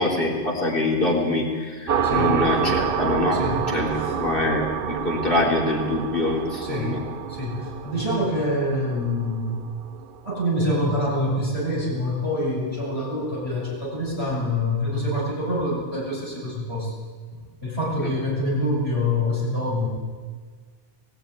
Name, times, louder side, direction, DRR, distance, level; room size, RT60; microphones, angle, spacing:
voice 1, 0.0-3.4 3.7-7.0 18.0-18.1, left 2 dB, 55° left, -2 dB, 4.2 m, -24 dB
sound 1, 1.9-11.1, right 7 dB, 60° right, 1.0 m, -28 dB
voice 2, 2.0-2.4 3.3-3.5 6.6-7.0 7.3-9.6 10.2-16.9 17.3-19.9, left 1 dB, 75° left, -5 dB, 8.5 m, -26 dB
20.0 x 14.5 x 9.9 m, 1.5 s
omnidirectional pair, 1.1 m